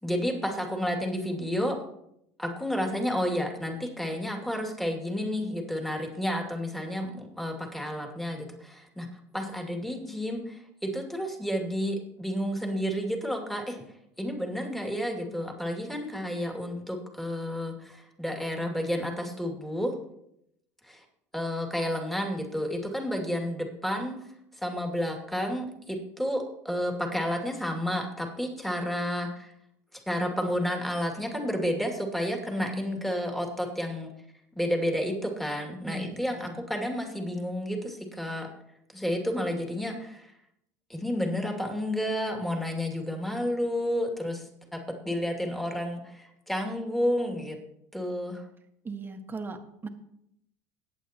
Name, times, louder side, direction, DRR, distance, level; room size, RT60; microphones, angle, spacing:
voice 1, 0.0-1.8 2.4-9.1 9.3-13.8 14.2-19.9 20.8-21.0 21.3-24.2 24.6-29.5 29.9-34.1 34.5-38.5 38.9-40.3 40.9-47.6 47.9-48.4, equal, ahead, 2 dB, 2.5 m, -31 dB
voice 2, 32.6-33.0 35.8-36.6 48.8-49.9, right 3 dB, 25° right, 5 dB, 1.6 m, -38 dB
20.0 x 8.5 x 3.0 m, 0.77 s
hypercardioid pair, 85°, 9 cm